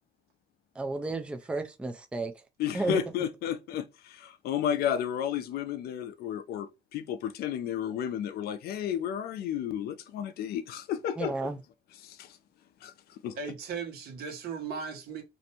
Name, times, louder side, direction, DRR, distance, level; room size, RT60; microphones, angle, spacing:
voice 1, 0.8-2.3 2.7-3.0 11.2-11.6, right 3 dB, 5° right, 0.4 m, -32 dB
voice 2, 2.6-11.5 12.0-12.4 12.8-13.4, left 9 dB, 65° left, 0.4 m, -32 dB
voice 3, 13.4-15.2, right 5 dB, 65° right, 1.0 m, -37 dB
2.6 x 2.1 x 2.8 m
cardioid pair, 110°, 17 cm